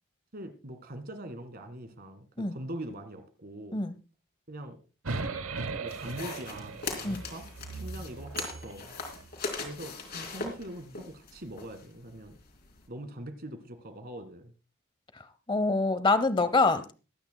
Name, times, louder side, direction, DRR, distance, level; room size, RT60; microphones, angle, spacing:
voice 1, 0.3-3.8 4.5-4.8 5.8-7.5 7.7-9.0 9.6-12.4 12.9-14.5, right 1 dB, 45° right, 9 dB, 1.9 m, -42 dB
sound 1, 5.0-9.3, right 3 dB, 75° right, 0.9 m, -38 dB
sound 2, 5.9-12.8, left 4 dB, 50° left, 3.4 m, -40 dB
sound 3, 8.4-10.4, right 5 dB, 20° right, 3.2 m, -50 dB
voice 2, 15.5-16.9, left 3 dB, 25° left, 13 dB, 0.8 m, -25 dB
22.5 x 9.5 x 2.2 m, 0.33 s
head